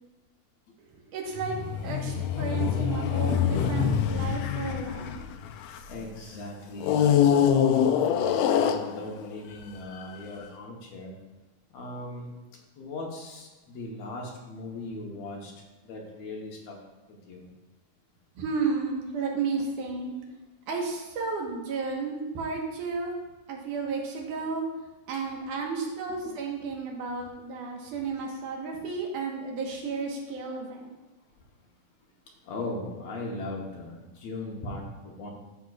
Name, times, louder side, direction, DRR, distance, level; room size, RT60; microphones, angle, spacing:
voice 1, 0.9-1.6 1.8-5.1 18.4-20.1 20.7-23.2 23.5-24.6 25.1-30.9, right 4 dB, 90° right, 0 dB, 2.8 m, -32 dB
sound 1, 1.4-6.1 6.8-9.3 10.0-10.1, left 8 dB, 80° left, 1.6 m, -25 dB
voice 2, 5.9-11.2 11.7-12.3 12.7-15.5 15.8-16.8 17.1-17.5 25.1-25.2 26.1-26.4 31.6-31.7 32.4-35.3, left 2 dB, 65° left, -1 dB, 2.1 m, -38 dB
13.0 x 6.0 x 2.4 m, 1.2 s
omnidirectional pair, 3.5 m